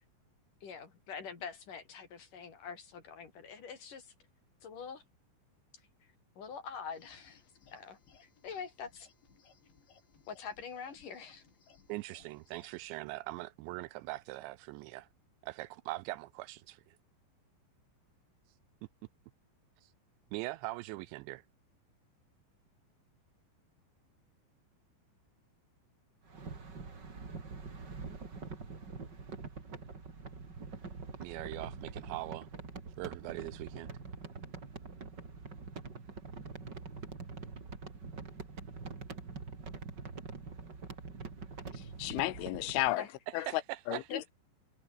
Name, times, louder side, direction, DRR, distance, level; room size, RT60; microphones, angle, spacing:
voice 1, 0.6-4.1 4.6-5.0 6.4-7.4 7.7-9.1 10.3-11.4 43.0-43.1 44.1-44.3, left 6 dB, 45° left, 4.9 m, -44 dB
sound 1, 6.9-12.8, left 6 dB, 70° left, 7.2 m, -64 dB
voice 2, 11.9-15.1 15.4-17.0 19.8-19.9 20.3-21.4 31.2-32.5 33.0-33.9 43.3-44.1, right 19 dB, 80° right, 2.7 m, -41 dB
sound 2, 26.2-42.9, right 4 dB, 25° right, 3.0 m, -45 dB
voice 3, 41.7-43.1 43.3-43.6 43.9-44.3, left 17 dB, 90° left, 3.5 m, -33 dB
omnidirectional pair, 5.5 m